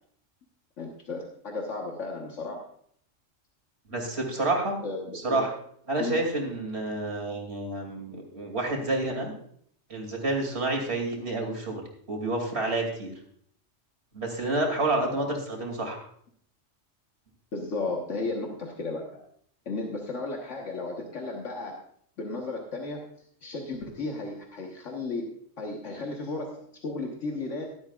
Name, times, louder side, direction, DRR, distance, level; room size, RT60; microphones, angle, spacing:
voice 1, 0.8-2.6 4.8-5.5 6.0-6.2 17.5-19.2 19.7-21.8 22.2-23.1 23.4-27.6, left 3 dB, 75° left, 0 dB, 1.7 m, -34 dB
voice 2, 3.9-4.8 5.2-5.5 5.9-9.3 9.9-11.8 12.1-13.1 14.1-16.0, right 2 dB, 60° right, 1 dB, 3.0 m, -29 dB
15.5 x 12.5 x 2.4 m, 0.64 s
omnidirectional pair, 1.3 m